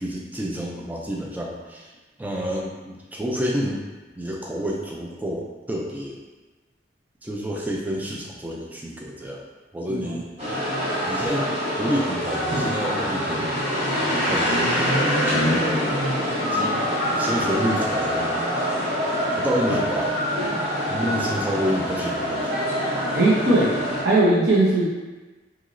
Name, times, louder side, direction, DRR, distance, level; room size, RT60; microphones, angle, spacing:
voice 1, 0.0-1.9 2.2-3.8 4.2-6.2 7.2-9.4 9.7-10.3 11.1-11.5 11.8-13.6 14.3-14.9 15.3-15.9 16.5-16.7 17.2-18.4 19.4-20.1 20.9-22.5, equal, 10° right, -2 dB, 0.3 m, -29 dB
voice 2, 9.9-10.6 21.0-21.1 23.1-23.7 24.0-24.8, right 2 dB, 70° right, -6 dB, 0.7 m, -20 dB
sound 1, 10.4-24.0, equal, 35° right, 1.0 m, -24 dB
3.0 x 2.7 x 2.5 m, 1.2 s
head